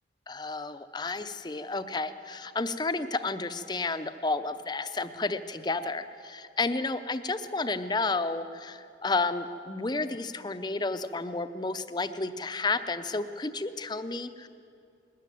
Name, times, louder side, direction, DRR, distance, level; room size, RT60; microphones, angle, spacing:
voice 1, 0.3-14.5, left 3 dB, 25° left, 10 dB, 0.7 m, -31 dB
20.5 x 13.5 x 9.4 m, 2.4 s
head